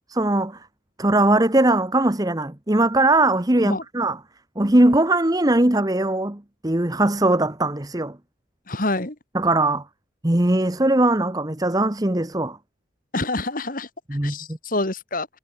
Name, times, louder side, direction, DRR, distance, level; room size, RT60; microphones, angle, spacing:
voice 1, 0.1-0.6 1.0-4.2 4.6-8.2 9.3-9.8 10.2-12.6 14.1-14.4, right 2 dB, 20° right, 1.1 m, -20 dB
voice 2, 8.7-9.2 13.1-13.9 14.2-15.3, left 2 dB, 45° left, 2.6 m, -26 dB
head